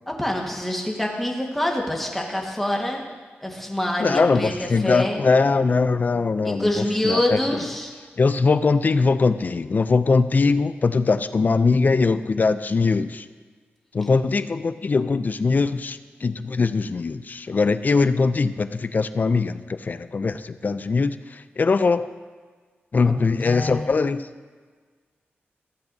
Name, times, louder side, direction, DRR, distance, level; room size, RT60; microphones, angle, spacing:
voice 1, 0.1-3.0 3.4-5.2 6.4-7.9 23.4-23.8, left 1 dB, 5° left, -1 dB, 1.5 m, -26 dB
voice 2, 4.0-7.7 8.2-13.3 13.9-22.1 22.9-24.3, left 4 dB, 45° left, 13 dB, 0.4 m, -21 dB
15.0 x 7.9 x 2.7 m, 1.5 s
wide cardioid pair, 80°, 4 cm